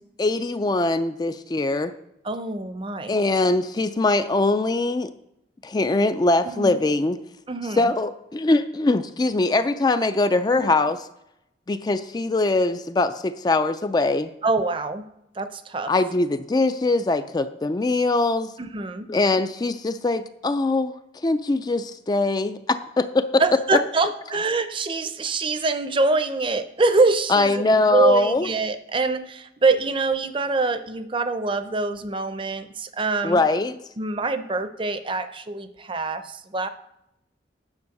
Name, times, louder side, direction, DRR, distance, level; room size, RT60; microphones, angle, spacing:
voice 1, 0.2-1.9 3.1-5.1 5.6-7.2 7.8-11.1 11.7-14.3 15.9-18.5 19.1-20.9 21.2-23.4 23.7-23.8 27.3-28.5 33.2-33.8, left 2 dB, 25° left, 11 dB, 0.3 m, -22 dB
voice 2, 2.2-3.2 6.4-6.8 7.5-7.9 10.5-10.7 14.4-15.0 15.4-15.9 18.6-19.1 23.4-33.4 34.0-36.7, right 3 dB, 30° right, 11 dB, 0.6 m, -24 dB
9.7 x 5.4 x 6.5 m, 0.83 s
head